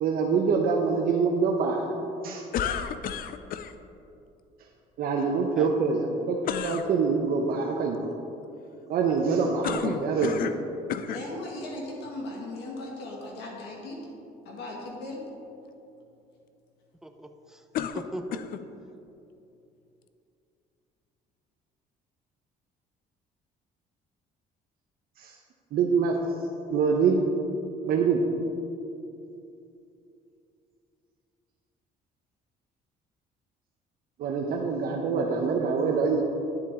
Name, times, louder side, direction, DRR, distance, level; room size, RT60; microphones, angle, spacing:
voice 1, 0.0-1.9 2.2-2.4 5.0-8.1 8.9-10.4 25.2-25.3 25.7-26.2 26.7-27.3 27.8-28.2 34.2-36.2, right 5 dB, 60° right, 1 dB, 0.8 m, -25 dB
sound 1, 2.5-3.7 6.4-6.9 9.6-10.6 10.9-11.3 12.1-12.2 17.7-18.7, left 8 dB, 55° left, 0.5 m, -31 dB
voice 2, 11.1-14.0 14.5-15.2, left 2 dB, 80° left, -2 dB, 1.9 m, -37 dB
voice 3, 17.0-18.6, right 1 dB, 5° right, 6 dB, 0.6 m, -40 dB
10.5 x 7.2 x 3.7 m, 2.8 s
cardioid pair, 110°, 17 cm